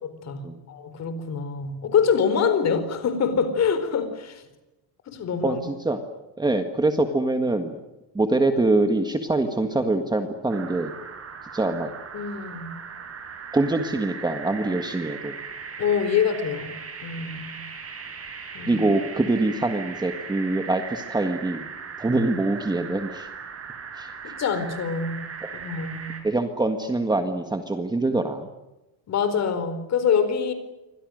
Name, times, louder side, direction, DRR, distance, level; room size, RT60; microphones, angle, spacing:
voice 1, 0.0-4.4 5.1-5.6 12.1-12.9 15.8-16.7 17.0-17.6 18.5-18.8 24.2-25.3 25.6-26.2 29.1-30.5, left 6 dB, 35° left, 11 dB, 4.5 m, -25 dB
voice 2, 5.4-6.0 6.4-7.8 8.2-10.9 11.5-11.9 13.5-15.4 18.7-21.7 22.0-23.3 24.0-24.1 25.4-25.5 26.2-28.5, right 2 dB, 10° right, 6 dB, 1.6 m, -24 dB
sound 1, 10.5-26.2, right 6 dB, 30° right, 6.7 m, -38 dB
28.5 x 25.0 x 6.5 m, 1.0 s
cardioid pair, 170°, 46 cm